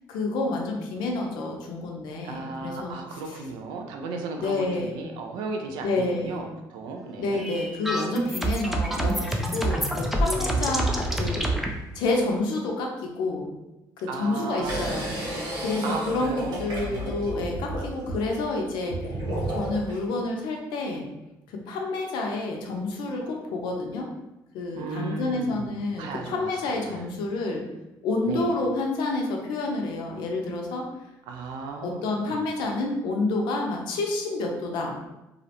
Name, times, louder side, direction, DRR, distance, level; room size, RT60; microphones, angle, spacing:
voice 1, 0.1-2.9 4.4-5.0 5.8-6.5 7.2-11.5 11.9-13.5 14.0-15.1 15.6-19.0 19.5-21.1 21.5-24.1 24.5-27.6 28.0-30.8 31.8-34.9, left 2 dB, 80° left, 1 dB, 0.5 m, -29 dB
voice 2, 2.2-7.5 10.4-10.9 14.1-15.0 15.8-17.3 24.8-27.1 28.2-28.5 31.3-32.4, right 4 dB, 85° right, 3 dB, 0.4 m, -35 dB
sound 1, 7.3-11.7, right 1 dB, 5° right, 0.3 m, -27 dB
sound 2, 14.6-20.0, right 1 dB, 65° right, 1.1 m, -32 dB
2.4 x 2.0 x 2.8 m, 0.98 s
cardioid pair, 110°, 8 cm